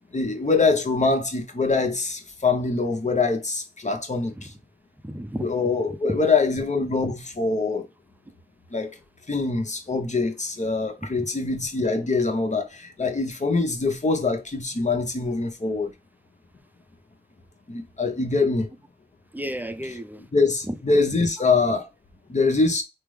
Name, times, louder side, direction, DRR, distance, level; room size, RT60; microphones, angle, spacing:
voice 1, 0.1-4.5 5.4-7.9 8.7-9.0 9.3-15.9 17.7-18.7 20.3-21.9 22.3-22.8, left 3 dB, 45° left, 0.9 m, -24 dB
voice 2, 5.0-5.5 5.9-6.2 11.0-11.3 19.3-20.2 20.6-20.8, equal, 10° right, 0.5 m, -32 dB
3.3 x 2.1 x 3.3 m
cardioid pair, 45°, 17 cm